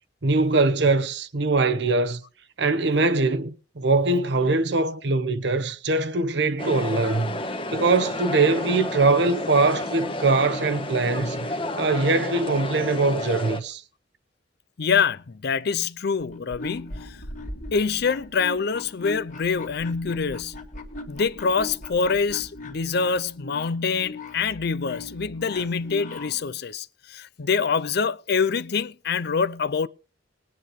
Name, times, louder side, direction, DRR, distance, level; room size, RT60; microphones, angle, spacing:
voice 1, 0.2-2.2 2.6-7.3 7.7-13.8, right 3 dB, 70° right, 0.9 m, -22 dB
sound 1, 6.6-13.6, left 1 dB, 30° left, 1.3 m, -31 dB
voice 2, 14.8-17.2 17.7-20.6 21.1-29.9, left 5 dB, 60° left, 0.5 m, -25 dB
sound 2, 16.3-26.4, left 2 dB, 45° left, 1.9 m, -39 dB
20.5 x 9.6 x 3.2 m
head